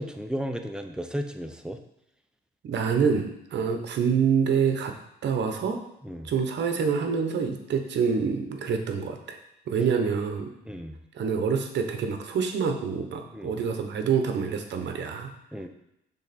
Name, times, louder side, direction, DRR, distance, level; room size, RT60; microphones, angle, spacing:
voice 1, 0.0-1.8 6.0-6.3 10.7-11.0 13.3-13.5 15.5-15.7, equal, 5° right, 6 dB, 0.6 m, -34 dB
voice 2, 2.6-4.9 5.2-5.8 6.2-9.4 9.7-10.5 11.1-15.3, right 6 dB, 65° right, 6 dB, 0.9 m, -26 dB
6.4 x 3.6 x 4.2 m, 0.84 s
cardioid pair, 90°, 20 cm